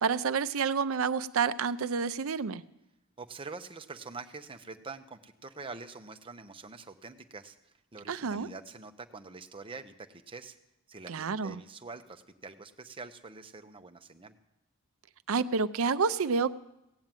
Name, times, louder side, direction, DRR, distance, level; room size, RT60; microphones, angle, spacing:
voice 1, 0.0-2.6 8.1-8.5 11.1-11.6 15.3-16.5, right 5 dB, 70° right, 13 dB, 0.5 m, -29 dB
voice 2, 3.2-10.6 10.9-14.3, right 4 dB, 25° right, 7 dB, 0.8 m, -45 dB
17.0 x 7.5 x 9.0 m, 0.87 s
head